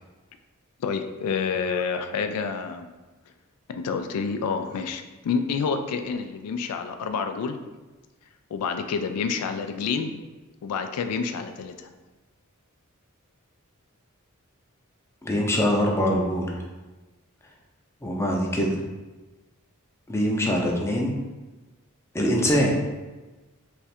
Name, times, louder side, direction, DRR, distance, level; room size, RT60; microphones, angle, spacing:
voice 1, 0.8-2.9 3.7-7.6 8.5-10.1 10.6-11.9, left 5 dB, 90° left, 7 dB, 0.3 m, -28 dB
voice 2, 15.2-16.5 18.0-18.8 20.1-21.2 22.1-22.7, equal, 10° left, -1 dB, 0.5 m, -23 dB
3.2 x 2.4 x 4.2 m, 1.2 s
head